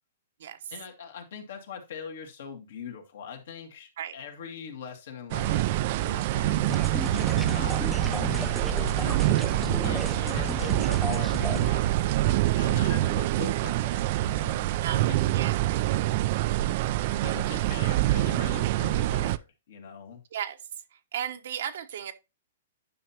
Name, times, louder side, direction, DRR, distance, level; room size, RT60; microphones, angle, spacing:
voice 1, 0.7-5.7 6.0-9.2 9.8-15.5 17.1-20.2, left 7 dB, 70° left, 2.1 m, -42 dB
sound 1, 5.3-19.4, right 15 dB, 45° right, 0.3 m, -26 dB
sound 2, 6.7-11.7, left 1 dB, ahead, 0.6 m, -35 dB
voice 2, 9.9-10.3 14.8-15.1 15.3-16.2 19.2-19.3 20.3-20.6 21.1-22.1, right 9 dB, 65° right, 1.0 m, -36 dB
10.0 x 5.8 x 2.9 m
hypercardioid pair, 150°, 0 cm